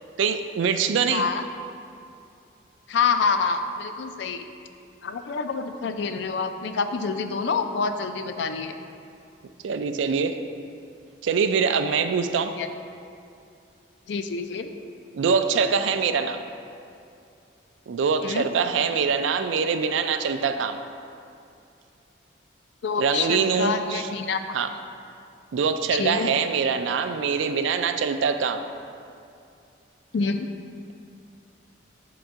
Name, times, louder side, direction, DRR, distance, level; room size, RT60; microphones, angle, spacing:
voice 1, 0.2-1.2 9.6-10.4 11.2-12.5 15.1-16.4 17.9-20.8 23.0-24.1 24.5-24.7 25.5-28.6, right 6 dB, 85° right, 9 dB, 0.4 m, -24 dB
voice 2, 1.1-1.4 2.9-4.5 5.0-8.7 12.6-12.7 14.1-14.7 18.2-18.5 22.8-24.6 25.9-26.3 30.1-30.5, left 5 dB, 70° left, 8 dB, 0.4 m, -27 dB
6.2 x 3.8 x 4.5 m, 2.5 s
head